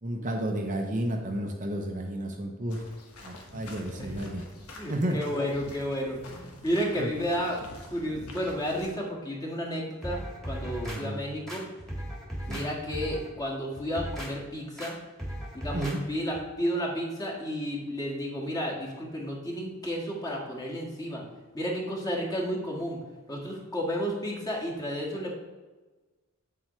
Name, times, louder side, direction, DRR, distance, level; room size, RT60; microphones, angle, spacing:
voice 1, 0.0-2.8 3.2-4.4 4.9-5.2 7.0-7.1 10.8-11.2 12.5-12.7 15.7-16.0, right 1 dB, 35° right, 1 dB, 0.7 m, -31 dB
sound 1, 2.7-8.9, left 1 dB, 85° left, 1.4 m, -46 dB
voice 2, 4.7-7.6 7.9-11.7 12.5-15.0 15.5-21.2 21.5-23.0 23.3-25.3, equal, 15° left, -3 dB, 1.7 m, -32 dB
sound 2, 10.0-11.0 11.5-12.7 12.9-13.3 13.7-14.3 14.8-14.9 15.2-16.0 16.3-16.4, equal, ahead, 1.7 m, -36 dB
7.7 x 7.4 x 3.1 m, 1.2 s
head